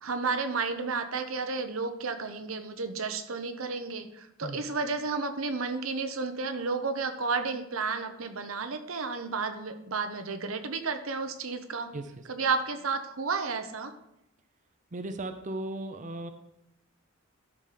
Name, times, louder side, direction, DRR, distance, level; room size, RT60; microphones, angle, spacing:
voice 1, 0.0-11.9 12.3-13.9, right 4 dB, 90° right, 8 dB, 1.0 m, -32 dB
voice 2, 11.9-12.2 14.9-16.3, right 2 dB, 40° right, 8 dB, 0.7 m, -37 dB
12.5 x 5.0 x 5.8 m, 0.81 s
head